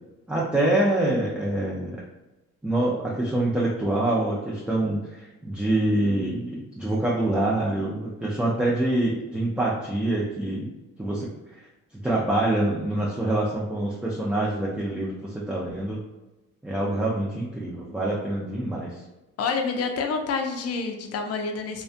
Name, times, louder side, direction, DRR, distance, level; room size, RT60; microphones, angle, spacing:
voice 1, 0.3-2.0 2.6-10.7 11.0-11.7 12.0-16.0 16.6-19.0, right 1 dB, 5° right, -5 dB, 0.4 m, -25 dB
voice 2, 19.4-21.8, left 4 dB, 55° left, 5 dB, 0.5 m, -28 dB
2.4 x 2.2 x 2.5 m, 1.0 s
cardioid pair, 90°, 30 cm